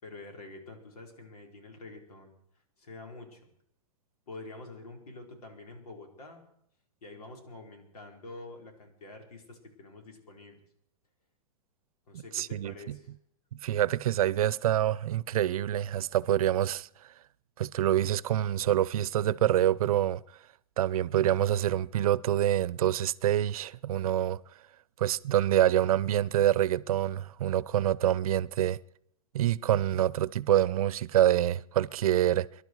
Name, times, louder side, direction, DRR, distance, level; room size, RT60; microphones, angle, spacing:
voice 1, 0.0-2.3 2.8-3.4 4.3-6.4 7.0-10.6 12.1-13.1, left 2 dB, 90° left, 4.8 m, -47 dB
voice 2, 12.1-13.0 13.6-16.9 17.6-20.2 20.8-24.4 25.0-28.8 29.3-32.5, right 12 dB, 70° right, 0.7 m, -26 dB
25.0 x 11.5 x 4.8 m
hypercardioid pair, 150°, 19 cm